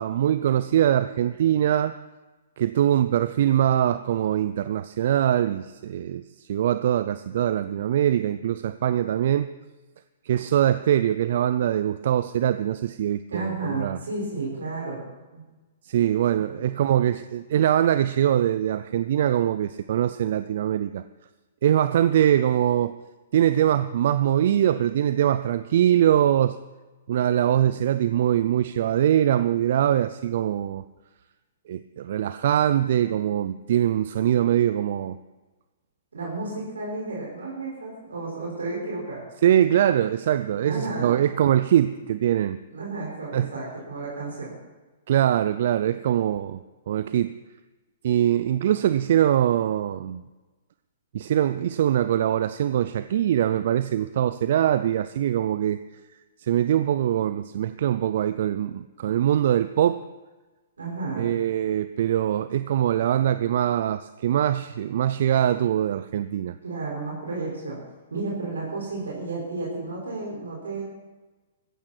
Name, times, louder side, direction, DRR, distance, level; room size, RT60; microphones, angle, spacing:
voice 1, 0.0-1.9 2.6-9.5 10.2-14.0 15.8-21.0 21.6-22.9 23.3-26.6 27.1-30.8 31.7-35.2 39.4-42.6 43.3-43.5 45.1-46.6 46.9-47.3 48.0-50.2 51.1-55.8 56.4-60.0 61.2-66.5, right 11 dB, 60° right, 13 dB, 0.5 m, -22 dB
voice 2, 13.3-15.0 15.3-15.4 16.3-16.6 36.1-39.2 40.6-41.2 42.7-44.6 60.8-61.3 66.6-67.8 68.1-70.8, right 3 dB, 80° right, -4 dB, 5.7 m, -32 dB
15.5 x 14.5 x 4.5 m, 1.2 s
hypercardioid pair, 120°, 0 cm